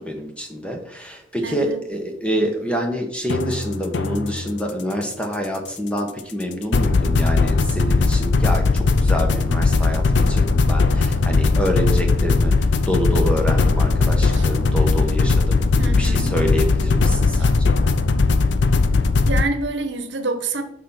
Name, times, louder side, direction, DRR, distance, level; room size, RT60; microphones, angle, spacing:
voice 1, 0.0-17.8, equal, 5° left, 1.1 m, -27 dB
voice 2, 1.4-1.8 14.3-14.5 15.8-16.3 17.4-17.5 19.2-20.6, right 3 dB, 80° right, 1.0 m, -27 dB
sound 1, 3.3-4.5 6.7-19.4, left 3 dB, 75° left, 0.5 m, -18 dB
6.6 x 5.1 x 5.6 m
head